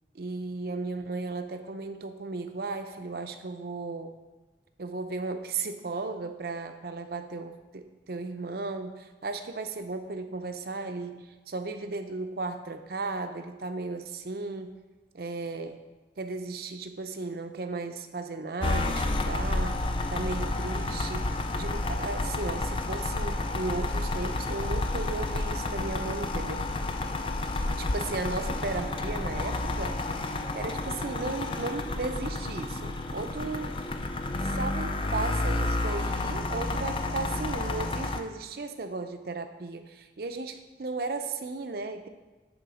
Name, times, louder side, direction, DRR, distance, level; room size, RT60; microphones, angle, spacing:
voice 1, 0.1-4.1 4.8-14.8 15.1-15.8 16.2-26.7 27.8-30.0 30.5-33.8 34.4-42.1, right 3 dB, 55° right, 8 dB, 0.6 m, -35 dB
sound 1, 18.6-38.2, left 2 dB, 30° left, 0.4 m, -30 dB
11.0 x 3.7 x 4.9 m, 1.2 s
head